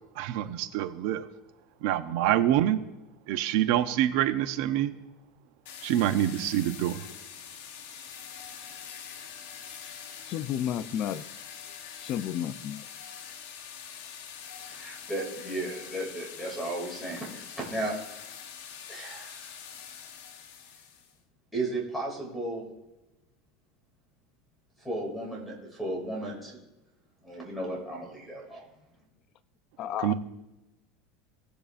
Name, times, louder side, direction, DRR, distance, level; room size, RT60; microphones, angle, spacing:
voice 1, 0.2-1.3 1.8-2.8 3.3-4.9 5.8-7.0 30.0-30.1, right 12 dB, 60° right, 11 dB, 0.7 m, -26 dB
sound 1, 5.7-21.1, left 8 dB, 75° left, 1.1 m, -44 dB
voice 2, 10.3-11.3 12.1-12.8 29.8-30.1, left 10 dB, 40° left, 13 dB, 0.5 m, -31 dB
voice 3, 14.7-18.0 18.9-19.5 21.5-22.6 24.8-26.6 27.2-28.7, right 1 dB, ahead, -5 dB, 2.6 m, -34 dB
17.5 x 6.8 x 2.5 m, 1.0 s
supercardioid pair, 145°, 0 cm